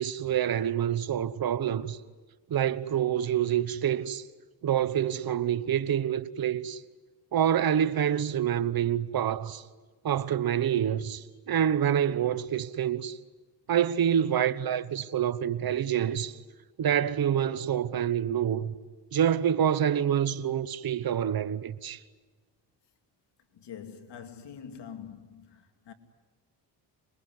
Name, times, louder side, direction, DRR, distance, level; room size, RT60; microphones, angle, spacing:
voice 1, 0.0-2.0 2.5-4.2 4.6-6.8 7.3-9.6 10.0-13.2 13.7-16.4 16.8-18.7 19.1-22.0, right 9 dB, 55° right, 1.2 m, -27 dB
voice 2, 23.5-25.9, left 7 dB, 75° left, 2.8 m, -45 dB
26.5 x 23.0 x 9.6 m
cardioid pair, 80°, 42 cm